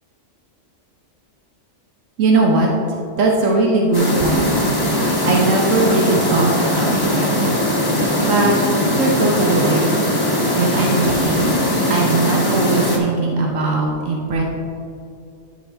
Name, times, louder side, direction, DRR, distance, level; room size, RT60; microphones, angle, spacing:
voice 1, 2.2-2.7 3.2-4.7 5.2-7.6 8.2-8.6 9.0-9.9 10.5-11.5 11.9-14.4, right 3 dB, 85° right, -1 dB, 1.3 m, -19 dB
sound 1, 3.9-13.0, left 1 dB, 20° left, 1.0 m, -19 dB
12.5 x 5.2 x 3.4 m, 2.5 s
omnidirectional pair, 1.3 m